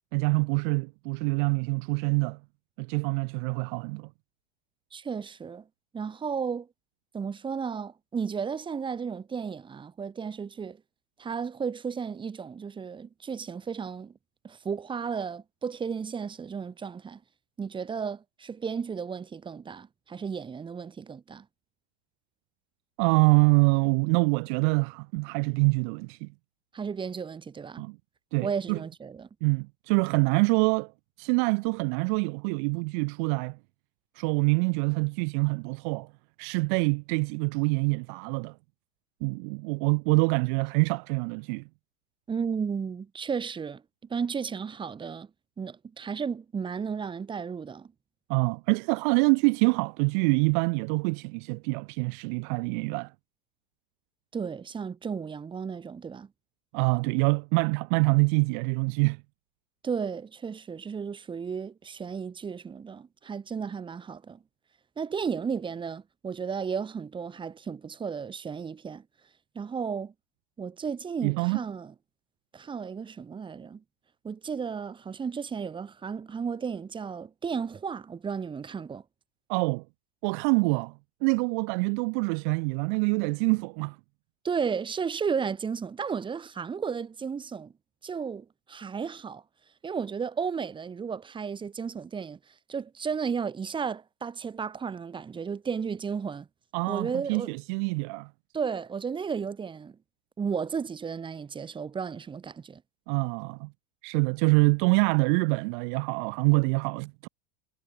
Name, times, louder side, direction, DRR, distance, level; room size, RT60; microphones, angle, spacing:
voice 1, 0.1-2.4 2.8-4.1 23.0-26.3 27.8-28.0 28.3-28.8 29.4-30.9 31.2-33.6 34.2-36.1 36.4-38.5 39.2-41.6 48.3-53.1 56.7-59.2 71.2-71.6 79.5-79.8 80.2-80.9 81.2-84.0 96.7-98.3 103.1-103.7 104.0-107.3, right 35 dB, 55° right, 0.8 m, -25 dB
voice 2, 4.9-5.6 5.9-6.7 7.1-10.8 11.2-14.1 14.4-17.2 17.6-21.5 26.7-27.8 28.4-29.3 42.3-43.8 44.1-45.3 45.6-47.9 54.3-56.3 59.8-64.4 65.0-69.0 69.6-70.1 70.6-71.9 72.5-73.8 74.2-79.0 84.4-87.7 88.0-89.4 89.8-92.4 92.7-96.5 96.9-97.5 98.5-100.0 100.4-102.8, right 6 dB, 15° right, 2.0 m, -34 dB
supercardioid pair, 135°, 29 cm